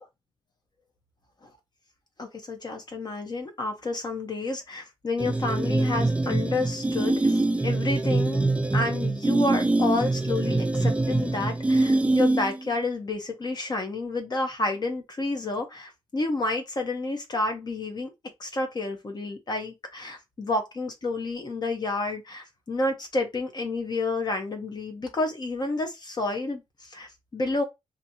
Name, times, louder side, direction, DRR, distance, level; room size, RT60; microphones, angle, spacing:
voice 1, 2.2-18.1 18.4-27.6, left 2 dB, 40° left, 0.8 m, -30 dB
sound 1, 5.2-12.7, right 2 dB, 10° right, 0.4 m, -24 dB
2.9 x 2.7 x 2.7 m
cardioid pair, 80°, 11 cm